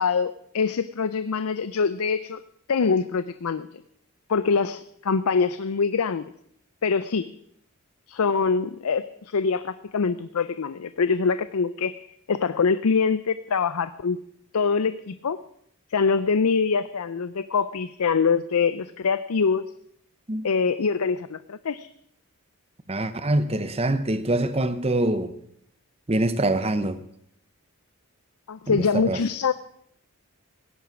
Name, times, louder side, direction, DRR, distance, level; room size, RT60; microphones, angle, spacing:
voice 1, 0.0-2.4 2.7-3.7 4.3-6.2 6.8-7.3 8.1-14.2 14.5-15.4 15.9-19.7 20.4-21.9 28.5-29.5, left 5 dB, 85° left, 0.5 m, -24 dB
voice 2, 22.9-25.3 26.1-27.0 28.7-29.2, right 1 dB, 25° right, 0.9 m, -24 dB
16.5 x 10.5 x 6.0 m
head